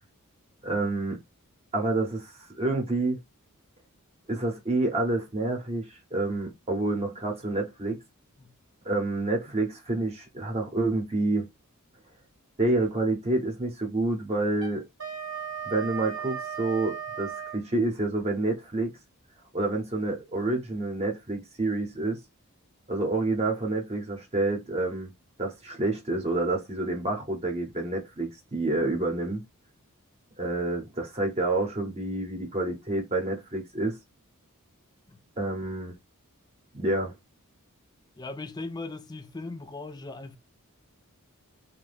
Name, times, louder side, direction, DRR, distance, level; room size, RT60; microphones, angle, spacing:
voice 1, 0.6-1.2 1.7-3.2 4.3-8.0 8.8-11.5 12.6-14.8 15.7-18.9 19.5-22.2 22.9-25.1 25.4-29.4 30.4-34.0 35.4-35.9 36.7-37.1, right 2 dB, 30° right, 0.9 m, -28 dB
Wind instrument woodwind instrument, 14.5-17.6, right 8 dB, 60° right, 0.9 m, -36 dB
voice 2, 38.2-40.4, left 3 dB, 20° left, 0.3 m, -38 dB
2.7 x 2.3 x 3.3 m
head